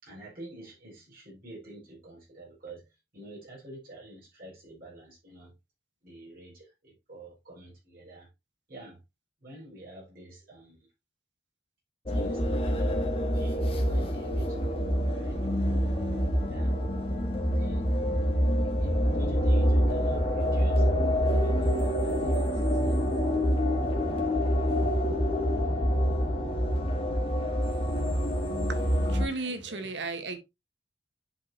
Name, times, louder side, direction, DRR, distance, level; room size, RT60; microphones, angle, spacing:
voice 1, 0.0-2.8 3.1-5.5 6.0-8.3 8.7-9.0 9.4-10.8 12.1-13.0 13.3-14.6 15.1-15.9 16.5-16.7 17.5-17.9 18.8-20.9 21.3-23.0 29.3-29.9, right 1 dB, 50° right, 4.9 m, -48 dB
sound 1, 12.1-29.3, equal, 30° left, 1.5 m, -26 dB
voice 2, 28.7-30.4, right 3 dB, 75° right, 1.2 m, -35 dB
10.5 x 5.1 x 2.8 m
head